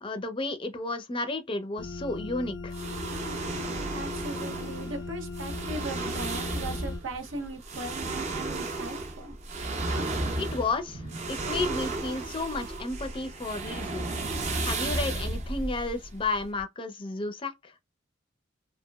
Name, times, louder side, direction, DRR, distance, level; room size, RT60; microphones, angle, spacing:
voice 1, 0.0-2.8 10.4-11.0 11.3-14.1 14.6-17.7, left 3 dB, 25° left, 0.4 m, -32 dB
sound 1, 1.8-7.0, left 3 dB, 80° left, 0.4 m, -38 dB
sound 2, 2.7-16.6, right 2 dB, 35° right, 0.5 m, -34 dB
voice 2, 3.9-9.3, right 2 dB, 80° right, 0.7 m, -38 dB
2.9 x 2.3 x 2.2 m
head